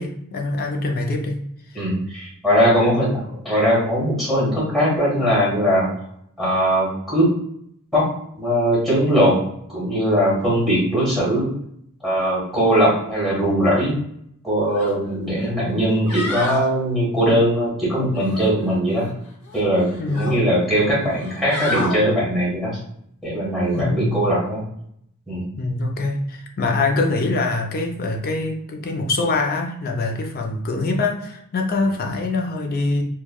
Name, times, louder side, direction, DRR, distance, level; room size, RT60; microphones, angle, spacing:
voice 1, 0.0-1.4 20.0-20.4 23.8-24.2 25.6-33.0, left 2 dB, 45° left, 2 dB, 0.4 m, -24 dB
voice 2, 1.7-5.9 6.4-7.3 7.9-9.4 9.7-11.5 12.0-13.9 14.4-19.1 19.5-22.8 23.2-24.6 25.3-25.5, equal, ahead, -7 dB, 1.3 m, -20 dB
sound 1, 14.7-14.9 15.3-15.4 15.9-16.7 18.1-19.1 19.5-20.4 21.1-22.0 23.7-23.8, left 2 dB, 75° left, 0.8 m, -30 dB
3.1 x 2.2 x 2.2 m, 0.72 s
head